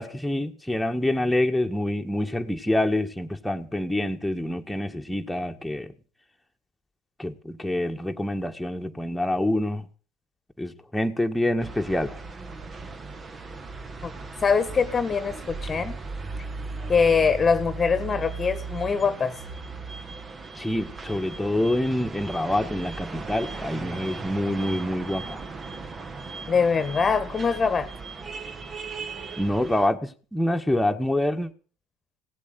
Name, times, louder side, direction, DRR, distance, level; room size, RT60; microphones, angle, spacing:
voice 1, 0.0-5.9 7.2-9.9 10.6-12.2 20.6-25.4 29.4-31.5, left 1 dB, 5° left, 2 dB, 2.0 m, -26 dB
sound 1, 11.6-29.9, right 4 dB, 30° right, 1.6 m, -37 dB
voice 2, 14.4-16.0 16.9-19.4 26.5-27.9, left 5 dB, 30° left, 12 dB, 1.6 m, -23 dB
17.5 x 8.4 x 9.2 m, 0.41 s
hypercardioid pair, 80°, 0 cm